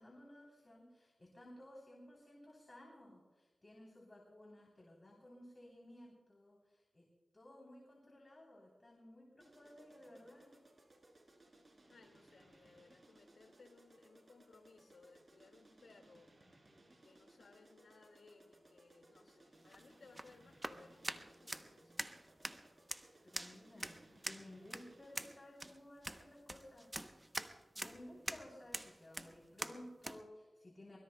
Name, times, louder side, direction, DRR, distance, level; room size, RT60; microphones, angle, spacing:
voice 1, 0.0-7.0 7.3-10.5 23.2-26.9 27.7-31.0, left 1 dB, 30° left, -2 dB, 3.3 m, -57 dB
sound 1, 9.4-25.6, right 1 dB, 40° right, 4.3 m, -65 dB
voice 2, 9.8-10.3 11.9-16.3 17.0-22.0, left 3 dB, 80° left, 4 dB, 2.0 m, -63 dB
sound 2, 19.6-30.2, right 1 dB, 20° right, 0.8 m, -46 dB
23.5 x 21.5 x 2.2 m, 1.3 s
cardioid pair, 65°, 0 cm